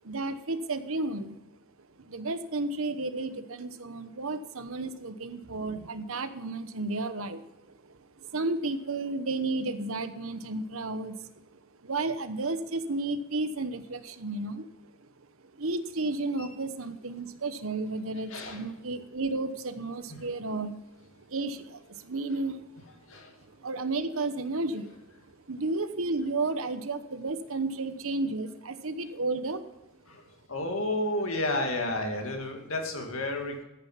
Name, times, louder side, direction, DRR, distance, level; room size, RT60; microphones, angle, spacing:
voice 1, 0.0-1.4 2.0-15.1 15.5-22.8 23.4-25.0 25.3-29.6, right 2 dB, 70° right, 11 dB, 1.0 m, -33 dB
voice 2, 18.3-18.6 20.1-20.2 23.0-23.3 30.1-30.2 30.5-33.6, left 1 dB, 70° left, 3 dB, 2.4 m, -31 dB
14.0 x 9.6 x 5.7 m, 0.96 s
head